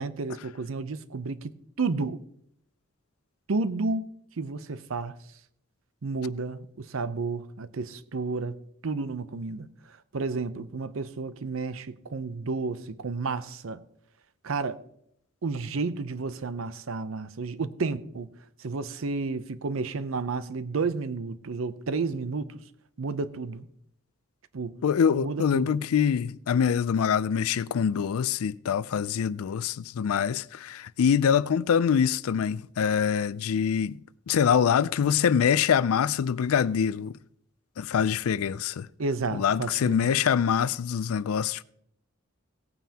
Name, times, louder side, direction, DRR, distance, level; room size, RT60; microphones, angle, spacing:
voice 1, 0.0-2.2 3.5-4.1 4.4-5.2 6.0-8.6 8.8-13.8 14.4-14.8 15.4-18.3 18.6-22.6 23.0-23.7 24.5-24.8 25.1-25.8 39.0-40.2, right 4 dB, 75° right, 0.6 m, -31 dB
voice 2, 24.8-34.0 34.3-37.1 37.8-38.9 39.3-41.6, left 7 dB, 90° left, 0.4 m, -24 dB
17.0 x 9.1 x 2.8 m
head